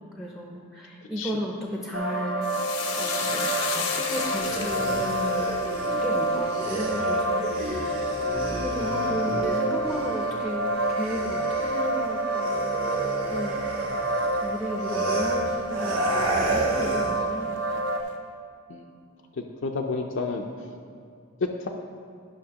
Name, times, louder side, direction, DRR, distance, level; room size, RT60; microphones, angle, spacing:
voice 1, 0.2-13.0 13.3-14.1 14.4-17.6, equal, ahead, -1 dB, 0.5 m, -35 dB
sound 1, 1.9-18.0, right 1 dB, 60° right, 0.6 m, -28 dB
sound 2, 2.4-11.0 11.3-12.0 12.3-12.5, left 5 dB, 85° left, 0.8 m, -36 dB
sound 3, 4.2-10.4 10.7-17.2, right 2 dB, 80° right, 1.5 m, -33 dB
voice 2, 19.4-20.5 21.4-21.7, left 3 dB, 60° left, 2 dB, 0.4 m, -30 dB
11.5 x 5.7 x 2.9 m, 2.3 s
head